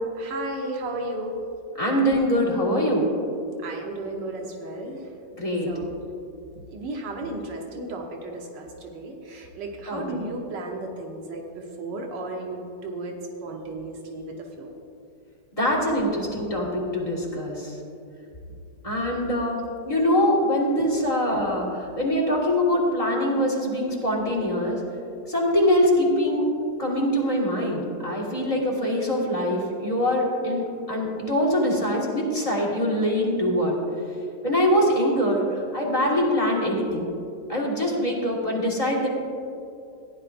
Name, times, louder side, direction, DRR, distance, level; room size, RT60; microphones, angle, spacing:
voice 1, 0.1-1.4 3.6-5.1 5.6-5.9 6.7-14.7, right 2 dB, 85° right, 1 dB, 1.7 m, -34 dB
voice 2, 1.8-3.1 5.4-5.8 9.9-10.3 15.6-17.7 18.8-24.8 25.3-26.5 26.8-33.8 34.4-37.1 37.5-39.1, equal, 20° left, -3 dB, 1.7 m, -23 dB
16.0 x 10.0 x 2.6 m, 2.6 s
omnidirectional pair, 1.9 m